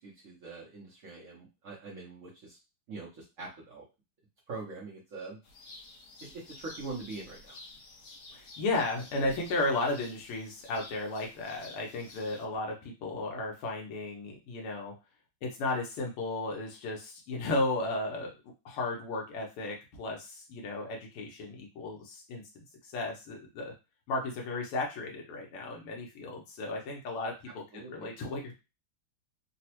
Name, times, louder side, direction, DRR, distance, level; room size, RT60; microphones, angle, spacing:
voice 1, 0.0-2.6 2.9-3.8 4.5-5.4 6.2-7.6 27.5-28.1, right 3 dB, 75° right, -4 dB, 0.7 m, -43 dB
sound 1, 5.4-12.5, left 2 dB, 65° left, 1.0 m, -51 dB
voice 2, 8.3-14.9 15.4-18.3 18.6-22.4 22.8-23.7 24.1-28.5, left 2 dB, 90° left, 0 dB, 1.7 m, -34 dB
4.0 x 2.0 x 2.8 m, 0.27 s
omnidirectional pair, 2.4 m